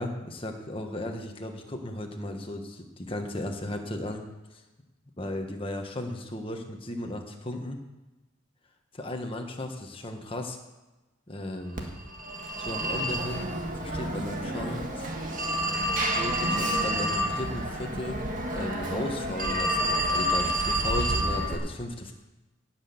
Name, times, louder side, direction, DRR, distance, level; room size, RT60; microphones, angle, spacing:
voice 1, 0.0-4.2 4.5-4.6 5.2-7.8 9.0-10.6 11.3-11.9 12.6-15.1 16.1-18.2 18.5-22.1, left 1 dB, 25° left, 3 dB, 1.4 m, -35 dB
Telephone, 11.8-21.6, equal, 40° right, 1.8 m, -29 dB
18.0 x 6.2 x 7.1 m, 1.1 s
head